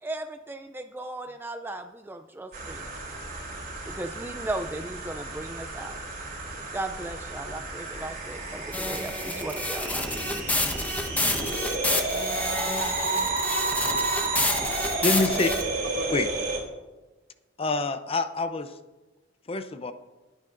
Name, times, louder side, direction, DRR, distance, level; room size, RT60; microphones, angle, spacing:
voice 1, 0.0-2.9 3.9-6.0 6.7-10.1, right 2 dB, 10° right, 7 dB, 0.4 m, -36 dB
sound 1, 2.5-16.6, right 3 dB, 50° right, 3.4 m, -31 dB
sound 2, 8.7-15.6, left 2 dB, 10° left, 1.1 m, -29 dB
voice 2, 12.0-14.0 14.7-14.8 16.0-16.1, right 2 dB, 65° right, -1 dB, 2.9 m, -44 dB
voice 3, 15.0-15.5 16.1-16.3 17.6-18.8 19.5-19.9, left 3 dB, 30° left, 9 dB, 0.7 m, -26 dB
20.5 x 9.1 x 2.6 m, 1.2 s
head